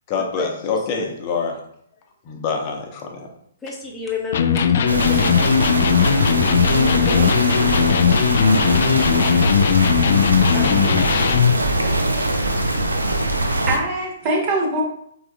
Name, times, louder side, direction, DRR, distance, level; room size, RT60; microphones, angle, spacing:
voice 1, 0.1-1.6 2.2-3.3, left 5 dB, 35° left, 2 dB, 0.8 m, -25 dB
voice 2, 3.6-5.9 6.5-7.4 10.5-11.3 11.7-12.5, left 2 dB, 10° left, -3 dB, 0.9 m, -31 dB
Electric guitar, 4.3-11.6, left 8 dB, 55° left, 0.3 m, -18 dB
sound 1, 4.9-13.8, right 1 dB, 85° right, 0.6 m, -21 dB
voice 3, 12.9-14.8, right 2 dB, 35° right, 0 dB, 1.3 m, -24 dB
4.8 x 3.5 x 2.3 m, 0.69 s
figure-of-eight pair, 125°, 0 cm